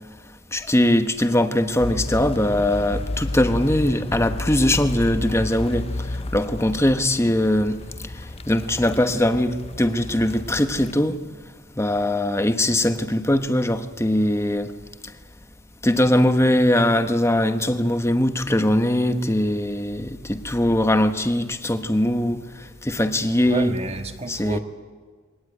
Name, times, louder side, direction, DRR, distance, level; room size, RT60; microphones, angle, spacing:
voice 1, 0.5-7.8 8.5-11.2 11.8-14.7 15.8-22.4 22.8-23.7 24.3-24.6, left 1 dB, 15° left, 1.1 m, -21 dB
sound 1, 1.8-10.9, left 2 dB, 30° left, 0.6 m, -32 dB
voice 2, 23.5-24.6, right 2 dB, 30° right, 1.5 m, -29 dB
22.5 x 18.0 x 9.2 m
head